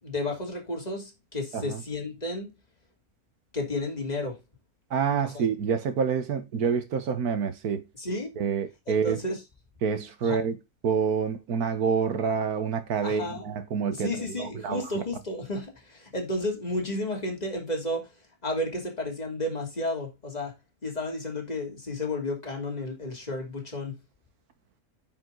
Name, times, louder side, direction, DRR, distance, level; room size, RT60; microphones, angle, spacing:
voice 1, 0.0-2.5 3.5-4.4 5.2-5.5 8.0-8.3 8.9-9.4 10.2-10.4 13.0-13.4 13.9-20.5 20.8-24.0, left 1 dB, 25° left, 2.9 m, -32 dB
voice 2, 4.9-7.8 8.4-9.2 9.8-10.6 10.8-14.8, right 6 dB, 75° right, 1.7 m, -27 dB
9.5 x 5.9 x 3.9 m
omnidirectional pair, 1.6 m